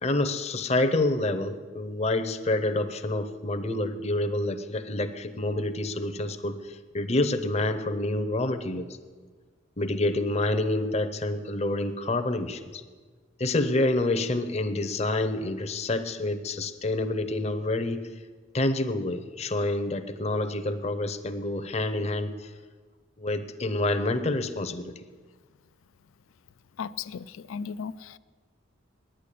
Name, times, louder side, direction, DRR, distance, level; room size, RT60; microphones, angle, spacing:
voice 1, 0.0-8.9 9.8-12.8 13.4-18.1 18.5-22.5 23.2-25.1, left 2 dB, 30° left, 9 dB, 0.7 m, -28 dB
voice 2, 26.8-28.2, left 6 dB, 90° left, 17 dB, 0.4 m, -36 dB
10.0 x 9.4 x 8.4 m, 1.5 s
head